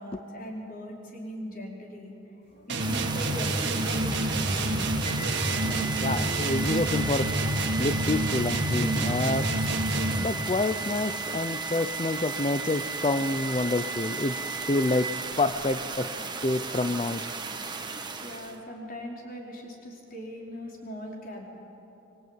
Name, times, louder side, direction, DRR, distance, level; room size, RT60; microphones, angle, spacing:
voice 1, 0.0-4.8 18.2-21.4, equal, 45° left, -1 dB, 4.9 m, -40 dB
sound 1, 2.7-10.3, right 1 dB, 55° right, 2.3 m, -28 dB
sound 2, 2.8-18.6, right 4 dB, 20° right, 1.6 m, -36 dB
sound 3, 5.1-15.1, right 3 dB, 85° left, 3.0 m, -38 dB
voice 2, 5.6-7.4 7.8-9.6 10.2-16.1 16.4-17.4, left 2 dB, 30° left, 10 dB, 0.6 m, -28 dB
24.0 x 23.0 x 9.2 m, 2.9 s
head